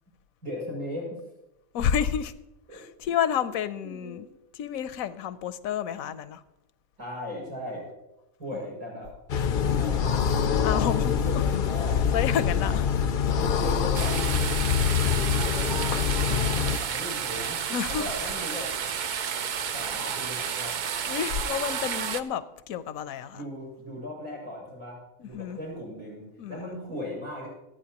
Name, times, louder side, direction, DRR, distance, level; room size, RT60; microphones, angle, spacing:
voice 1, 0.4-1.2 2.7-2.8 3.8-4.3 6.0-6.1 7.0-7.9 8.4-9.1 9.7-10.8 11.2-12.1 12.6-12.7 13.2-14.3 16.3-17.6 18.0-18.7 19.7-20.8 23.3-27.5, left 1 dB, 85° right, 6.7 m, -38 dB
voice 2, 1.7-2.3 2.7-4.3 4.5-6.4 8.5-8.6 10.6-11.1 12.1-12.8 13.3-13.4 17.7-18.1 21.1-23.4 25.2-25.6 26.4-26.8, left 8 dB, 85° left, 1.1 m, -30 dB
sound 1, 9.3-16.8, left 7 dB, 55° left, 0.6 m, -25 dB
sound 2, 13.9-22.2, right 7 dB, 65° right, 0.4 m, -31 dB
26.5 x 9.1 x 2.9 m
omnidirectional pair, 1.4 m